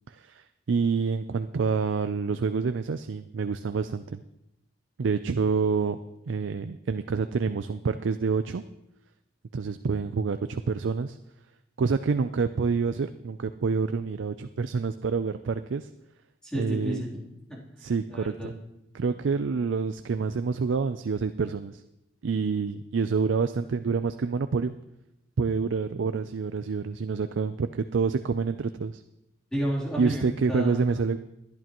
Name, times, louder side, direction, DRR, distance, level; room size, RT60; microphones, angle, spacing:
voice 1, 0.1-4.2 5.0-6.0 6.3-8.6 9.5-11.2 11.8-15.9 16.5-17.0 17.8-18.5 18.9-21.8 22.2-24.7 25.4-29.0 30.0-31.2, right 5 dB, 70° right, 10 dB, 0.4 m, -27 dB
voice 2, 16.4-17.6 18.1-18.5 29.5-30.2 30.5-31.0, equal, 5° left, -6 dB, 3.2 m, -31 dB
20.0 x 11.0 x 3.0 m, 0.86 s
head